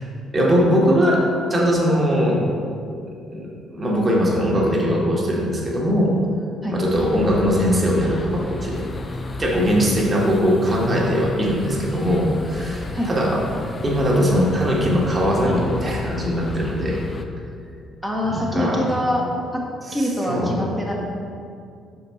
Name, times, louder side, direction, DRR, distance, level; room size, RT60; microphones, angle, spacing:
voice 1, 0.3-1.2 1.5-2.4 2.8-2.9 3.3-6.1 6.7-8.8 9.4-13.4 13.8-17.0 18.2-18.9 19.9-20.6, equal, 30° right, -3 dB, 1.4 m, -20 dB
sound 1, 6.9-17.2, left 2 dB, 30° left, 0.5 m, -32 dB
voice 2, 18.0-19.2 19.5-19.6 19.9-20.9, left 1 dB, 5° left, -3 dB, 1.2 m, -24 dB
6.4 x 4.7 x 4.2 m, 2.4 s
figure-of-eight pair, 45°, 0 cm